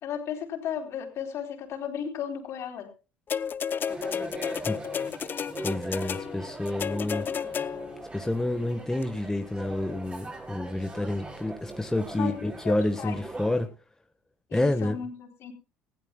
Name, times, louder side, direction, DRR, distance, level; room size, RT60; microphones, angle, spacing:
voice 1, 0.0-2.9 12.1-13.2 14.5-15.5, left 8 dB, 60° left, 4 dB, 4.1 m, -35 dB
sound 1, 3.3-8.0 9.0-9.1, left 7 dB, 40° left, 0.7 m, -32 dB
sound 2, 3.9-13.7, right 2 dB, 20° right, 6.6 m, -41 dB
voice 2, 5.6-7.2 8.1-13.7 14.5-15.0, left 1 dB, 10° left, 6 dB, 1.5 m, -29 dB
19.0 x 16.0 x 2.4 m, 0.31 s
supercardioid pair, 75°, 5 cm